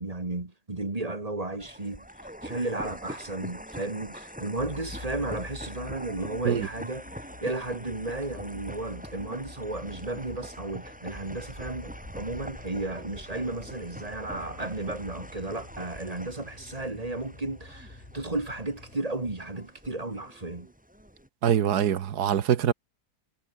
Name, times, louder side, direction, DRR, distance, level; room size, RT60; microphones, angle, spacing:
voice 1, 0.0-2.1 2.4-20.7, right 2 dB, 25° right, 2.2 m, -34 dB
sound 1, 1.6-21.3, equal, 5° right, 6.8 m, -44 dB
sound 2, 4.6-19.0, left 2 dB, 25° left, 2.8 m, -47 dB
voice 2, 21.4-22.7, right 9 dB, 75° right, 1.7 m, -24 dB
omnidirectional pair, 1.7 m